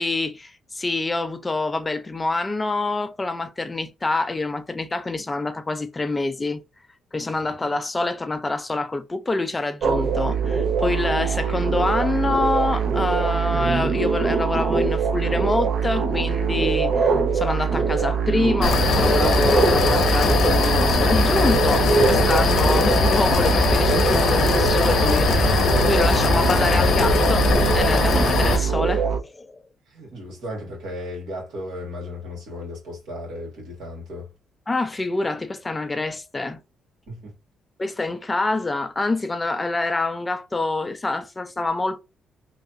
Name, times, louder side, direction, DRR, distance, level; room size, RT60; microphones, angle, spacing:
voice 1, 0.0-6.6 7.1-27.5 27.7-29.6 34.7-36.6 37.8-42.0, left 2 dB, 20° left, 0.4 m, -26 dB
sound 1, 9.8-29.2, right 5 dB, 60° right, 0.5 m, -23 dB
sound 2, 18.6-28.6, left 4 dB, 65° left, 0.7 m, -20 dB
voice 2, 29.9-34.3 37.1-37.3, left 1 dB, 80° right, 1.9 m, -35 dB
3.2 x 2.4 x 2.7 m
cardioid pair, 90°, 0 cm